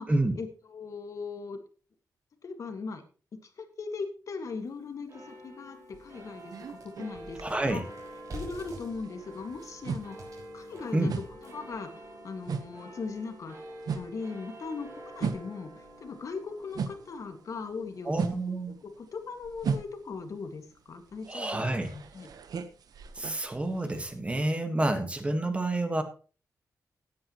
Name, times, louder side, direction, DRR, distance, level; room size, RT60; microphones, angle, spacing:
voice 1, 0.0-1.6 2.4-3.0 3.3-7.8 8.3-11.1 11.4-13.6 13.9-18.3 18.7-22.3, left 4 dB, 55° left, 7 dB, 1.8 m, -39 dB
sound 1, 4.7-4.8 5.3-5.4 5.7-11.8, right 1 dB, 60° right, 5.8 m, -48 dB
sound 2, 5.1-21.8, equal, 45° right, 5.1 m, -49 dB
sound 3, 5.9-8.3 8.6-17.2 17.5-24.2, right 6 dB, 80° right, 1.0 m, -37 dB
voice 2, 7.4-7.8 10.9-11.2 18.0-18.8 21.3-21.9 23.1-26.0, right 2 dB, 20° right, 7 dB, 1.5 m, -29 dB
17.0 x 9.5 x 3.0 m, 0.37 s
wide cardioid pair, 135°, 7 cm